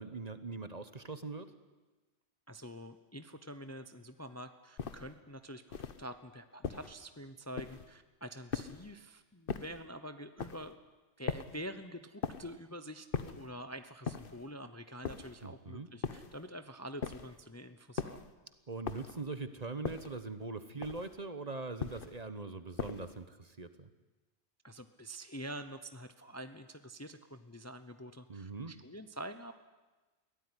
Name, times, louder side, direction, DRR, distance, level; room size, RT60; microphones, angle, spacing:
voice 1, 0.0-1.5 15.4-15.9 18.7-23.9 28.3-28.7, right 3 dB, 35° right, 11 dB, 1.2 m, -42 dB
voice 2, 2.5-10.8 11.2-18.3 24.6-29.5, equal, 15° left, 10 dB, 0.8 m, -46 dB
sound 1, 4.8-5.2 5.7-6.1 6.6-7.0 7.6-8.0 8.5-9.0 9.5-9.9 10.4-10.7 11.3-11.7 12.2-12.6 13.1-13.5 14.1-14.5 15.0-15.5 16.0-16.4 17.0-17.4 18.0-18.3 18.9-19.3 19.8-20.2 20.8-21.2 21.8-22.2 22.8-23.2, left 6 dB, 55° left, 1.2 m, -40 dB
23.0 x 16.5 x 9.9 m, 1.2 s
omnidirectional pair, 1.2 m